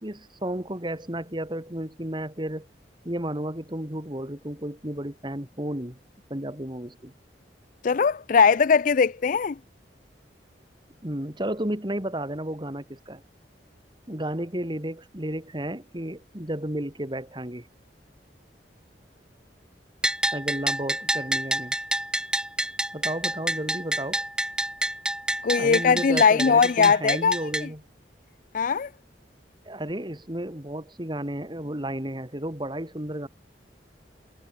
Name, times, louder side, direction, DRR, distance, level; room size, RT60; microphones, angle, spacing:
voice 1, 0.0-2.7 3.0-6.0 6.3-7.1 11.0-13.2 14.1-17.7 20.3-21.7 22.9-24.2 25.6-27.8 29.6-33.3, right 1 dB, 25° right, 2.9 m, -32 dB
voice 2, 7.8-9.6 25.4-27.4 28.5-28.9, left 5 dB, 45° left, 0.4 m, -20 dB
Bell, 20.0-27.7, right 1 dB, 5° right, 3.7 m, -28 dB
head